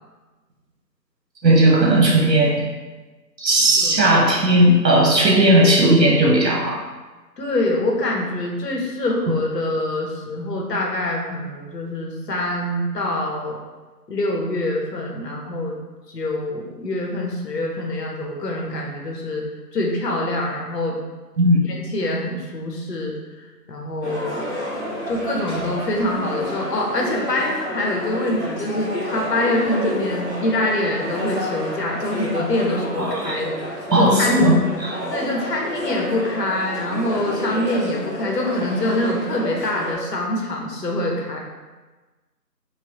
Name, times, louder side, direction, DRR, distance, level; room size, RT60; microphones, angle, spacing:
voice 1, 1.4-2.6 3.4-6.8 21.4-21.6 33.0-33.4 33.9-35.0, right 1 dB, 75° right, -3 dB, 1.2 m, -16 dB
voice 2, 7.4-13.6 14.1-15.8 16.1-19.5 19.7-21.0 21.6-24.4 25.1-34.5 35.1-41.4, left 1 dB, 70° left, -1 dB, 0.9 m, -25 dB
sound 1, 24.0-39.9, equal, 45° right, 1.0 m, -30 dB
4.8 x 2.2 x 2.8 m, 1.3 s
figure-of-eight pair, 180°, 50 cm